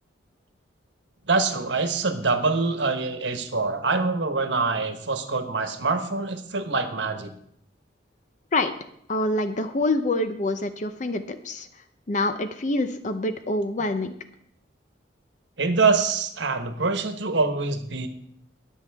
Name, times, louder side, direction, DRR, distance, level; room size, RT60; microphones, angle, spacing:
voice 1, 1.3-7.3 15.6-18.1, right 4 dB, 75° right, 7 dB, 1.2 m, -25 dB
voice 2, 9.1-11.7 12.1-14.1, left 2 dB, 45° left, 9 dB, 0.7 m, -26 dB
20.5 x 7.4 x 3.6 m, 0.70 s
head